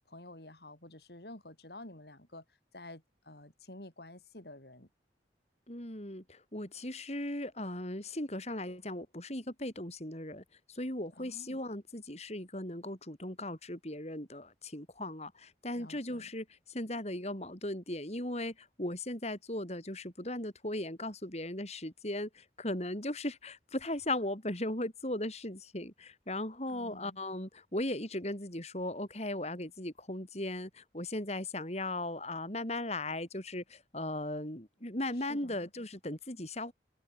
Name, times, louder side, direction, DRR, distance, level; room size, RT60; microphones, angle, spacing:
voice 1, 0.1-2.4 2.7-4.9 11.2-11.6 15.7-16.3 26.7-27.2 35.3-35.7, left 1 dB, 65° left, 4.7 m, -50 dB
voice 2, 5.7-36.7, left 1 dB, 35° left, 6.0 m, -37 dB
head